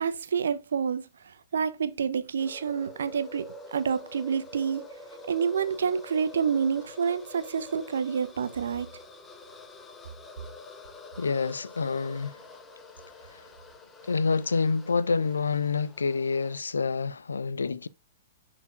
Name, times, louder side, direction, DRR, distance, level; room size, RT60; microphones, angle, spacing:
voice 1, 0.0-4.8 5.3-8.9, right 6 dB, 65° right, 0.9 m, -28 dB
sound 1, 2.4-16.6, left 1 dB, 15° left, 1.2 m, -47 dB
voice 2, 11.2-12.4 13.3-13.4 14.1-17.9, left 4 dB, 75° left, 0.5 m, -27 dB
10.5 x 4.5 x 2.4 m
figure-of-eight pair, 105°, 0 cm